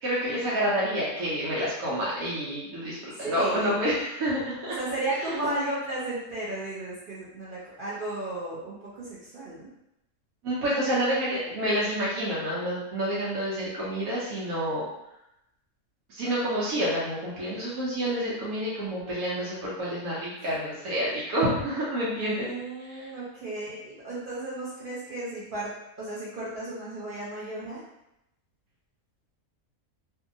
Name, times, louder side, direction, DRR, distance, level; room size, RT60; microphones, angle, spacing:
voice 1, 0.0-4.8 5.2-5.3 10.4-14.8 16.1-22.5 22.8-23.1, equal, 90° right, -7 dB, 1.2 m, -28 dB
voice 2, 3.1-3.8 4.8-9.7 22.2-25.7 26.0-27.8, right 2 dB, 55° right, -8 dB, 0.6 m, -34 dB
2.7 x 2.6 x 2.5 m, 0.86 s
omnidirectional pair, 1.5 m